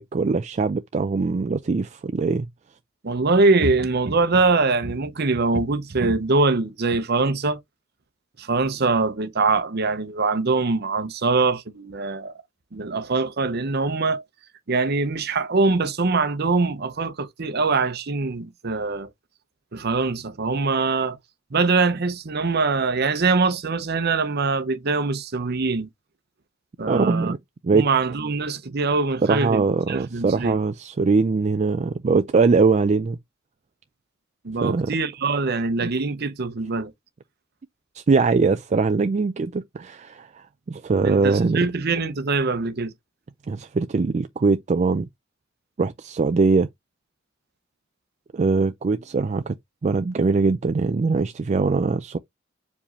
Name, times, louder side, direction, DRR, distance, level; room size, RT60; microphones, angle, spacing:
voice 1, 0.0-2.5 26.9-27.4 27.6-27.9 29.2-33.2 34.6-34.9 37.9-41.6 43.5-45.1 45.8-46.7 48.3-49.5 49.8-52.2, right 4 dB, 35° right, 0.4 m, -22 dB
voice 2, 3.0-7.6 8.4-12.3 12.7-14.2 14.7-19.1 19.7-21.2 21.5-25.9 26.8-27.3 27.7-30.6 34.4-36.9 41.0-42.9, right 3 dB, 55° right, 0.8 m, -23 dB
4.8 x 3.3 x 2.9 m
head